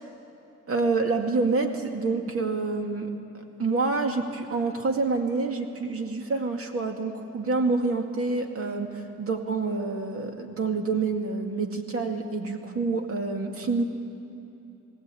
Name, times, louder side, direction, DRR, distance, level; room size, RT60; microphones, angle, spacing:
voice 1, 0.7-3.1 3.6-13.8, right 3 dB, 50° right, 4 dB, 2.3 m, -27 dB
19.5 x 17.0 x 8.5 m, 2.9 s
cardioid pair, 90°, 30 cm